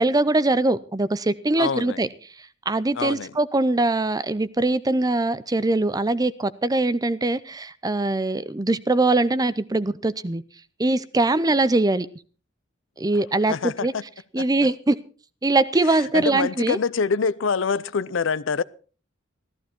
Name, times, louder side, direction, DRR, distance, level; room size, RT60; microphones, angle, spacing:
voice 1, 0.0-2.1 2.7-10.4 10.8-12.1 13.0-13.9 14.3-15.0 15.4-16.8, right 2 dB, 20° right, 0.6 m, -22 dB
voice 2, 1.6-2.0 2.9-3.3 13.5-14.0 14.4-14.5 16.1-18.6, left 5 dB, 70° left, 0.6 m, -25 dB
14.5 x 14.5 x 4.4 m
head